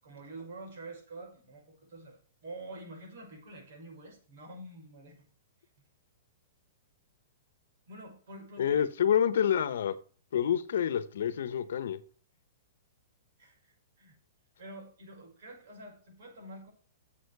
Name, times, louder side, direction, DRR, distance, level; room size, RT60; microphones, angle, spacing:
voice 1, 0.0-5.2 7.9-8.8 13.4-14.2 14.6-16.7, right 2 dB, 60° right, 1 dB, 5.9 m, -47 dB
voice 2, 8.6-9.9 10.3-12.0, left 9 dB, 70° left, 15 dB, 1.0 m, -27 dB
8.2 x 7.6 x 6.7 m, 0.41 s
hypercardioid pair, 160°, 0 cm